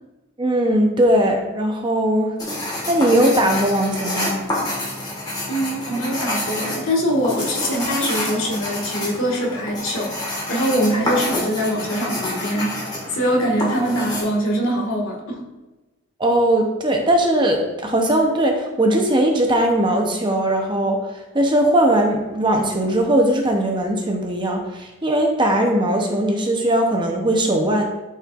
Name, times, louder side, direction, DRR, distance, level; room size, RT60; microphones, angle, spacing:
voice 1, 0.4-2.4 2.9-4.4 16.2-27.8, right 1 dB, 20° right, 2 dB, 0.7 m, -19 dB
sound 1, 2.4-14.2, left 1 dB, 20° left, 1.4 m, -28 dB
voice 2, 5.5-12.8 13.1-15.4, equal, 65° left, -2 dB, 1.6 m, -23 dB
11.5 x 4.3 x 2.4 m, 1.1 s
head